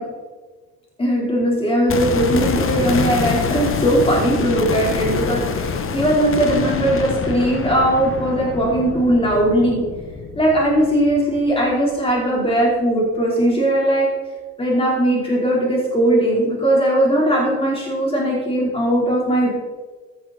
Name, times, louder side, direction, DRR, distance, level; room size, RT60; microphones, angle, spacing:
voice 1, 1.0-9.8 10.4-14.1 14.6-19.5, right 1 dB, 15° left, -4 dB, 4.4 m, -19 dB
sound 1, 1.9-11.9 12.2-12.3, left 5 dB, 35° left, 1.3 m, -26 dB
15.0 x 11.0 x 4.4 m, 1.3 s
cardioid pair, 115°, 36 cm